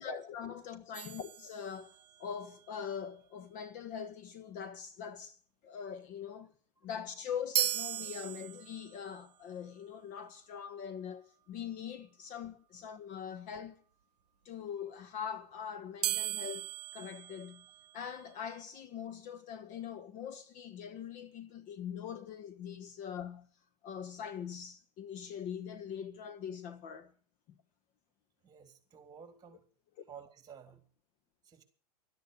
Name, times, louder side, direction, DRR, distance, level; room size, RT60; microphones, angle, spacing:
voice 1, 0.0-6.5 6.8-13.8 14.4-17.6 17.9-23.5 23.8-27.1, left 8 dB, 40° left, 1.4 m, -42 dB
sound 1, 0.9-2.2 7.5-9.0 16.0-18.2, right 12 dB, 80° right, 0.8 m, -36 dB
voice 2, 28.4-29.6 30.1-30.8 31.4-31.6, right 7 dB, 20° right, 3.6 m, -52 dB
13.0 x 10.5 x 9.7 m
hypercardioid pair, 120°, 20 cm